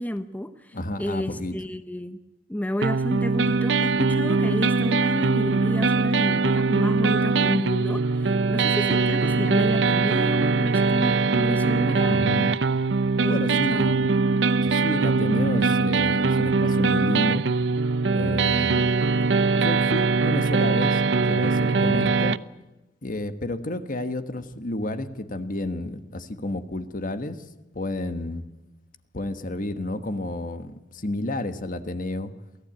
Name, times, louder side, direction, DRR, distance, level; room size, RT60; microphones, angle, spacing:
voice 1, 0.0-2.2 2.5-12.2 13.2-14.1, equal, 10° left, 10 dB, 0.9 m, -31 dB
voice 2, 0.7-1.6 12.1-12.5 13.2-13.9 14.6-17.4 18.1-18.9 19.6-22.4 23.0-27.4 27.7-28.4 29.1-32.3, left 1 dB, 50° left, 10 dB, 1.4 m, -31 dB
sound 1, 2.8-22.4, right 4 dB, 70° right, 0.7 m, -22 dB
23.5 x 15.5 x 9.0 m, 1.0 s
head